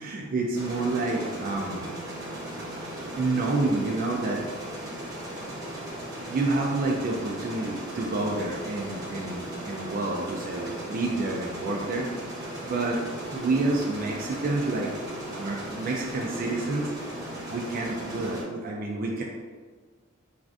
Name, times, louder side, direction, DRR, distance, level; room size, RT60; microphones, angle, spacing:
voice 1, 0.0-1.9 3.2-4.4 6.3-12.1 12.7-16.9 17.5-19.2, right 2 dB, 45° right, -1 dB, 0.3 m, -29 dB
sound 1, 0.5-18.4, right 1 dB, 20° right, 0.7 m, -37 dB
3.3 x 2.5 x 2.4 m, 1.5 s
head